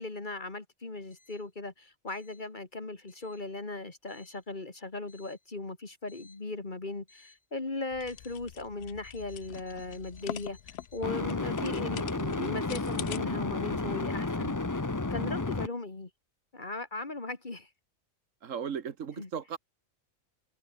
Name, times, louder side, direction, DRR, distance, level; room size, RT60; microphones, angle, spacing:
voice 1, 0.0-10.6 10.9-14.5 15.1-16.1 16.5-17.7 19.2-19.3, left 2 dB, 35° left, 2.2 m, -38 dB
sound 1, 6.1-6.3 11.0-15.7, left 3 dB, 15° left, 0.7 m, -32 dB
sound 2, 7.9-13.2, left 12 dB, 60° left, 0.7 m, -44 dB
voice 2, 18.4-19.6, right 7 dB, 70° right, 1.5 m, -36 dB
omnidirectional pair, 1.4 m